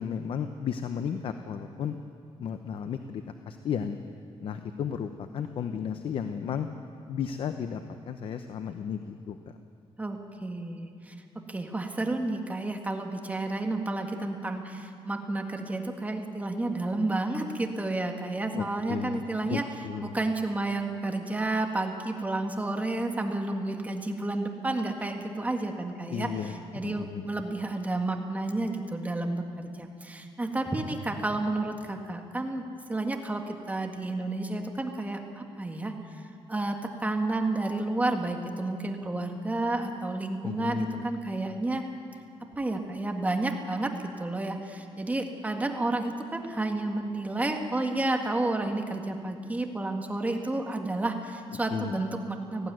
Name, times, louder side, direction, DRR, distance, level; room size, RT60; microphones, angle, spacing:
voice 1, 0.0-2.0 2.4-4.0 4.4-6.7 7.1-7.8 8.1-9.4 18.5-20.2 26.1-27.3 40.4-41.0 51.7-52.0, left 7 dB, 60° left, 8 dB, 0.9 m, -34 dB
voice 2, 10.0-19.6 20.0-32.6 32.9-36.2 36.5-41.8 42.6-52.7, right 2 dB, 15° right, 3 dB, 1.8 m, -31 dB
18.5 x 15.5 x 9.3 m, 2.3 s
cardioid pair, 135°, 10 cm